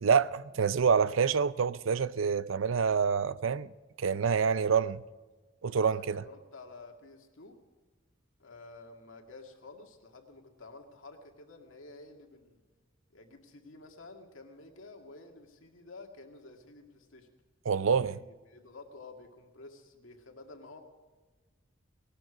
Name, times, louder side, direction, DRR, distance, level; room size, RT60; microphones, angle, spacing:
voice 1, 0.0-3.7 4.0-5.0 5.6-6.2 17.7-18.2, right 6 dB, 75° right, 0.5 m, -27 dB
voice 2, 5.8-7.6 8.4-12.6 13.1-17.3 17.8-18.2 18.5-20.8, left 3 dB, 85° left, 2.1 m, -51 dB
18.5 x 12.5 x 4.9 m
head